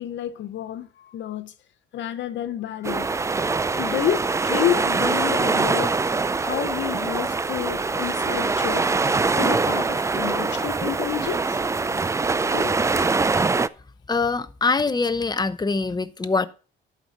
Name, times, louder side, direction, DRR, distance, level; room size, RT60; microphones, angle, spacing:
voice 1, 0.0-1.5 1.9-3.1 3.8-5.9 6.4-8.9 9.4-11.6 12.4-13.1 14.1-14.3, left 11 dB, 65° left, 0.7 m, -29 dB
sound 1, 2.8-13.7, right 4 dB, 15° right, 0.3 m, -23 dB
voice 2, 14.1-16.5, left 4 dB, 20° left, 0.7 m, -23 dB
11.5 x 5.4 x 4.1 m
cardioid pair, 90°, 20 cm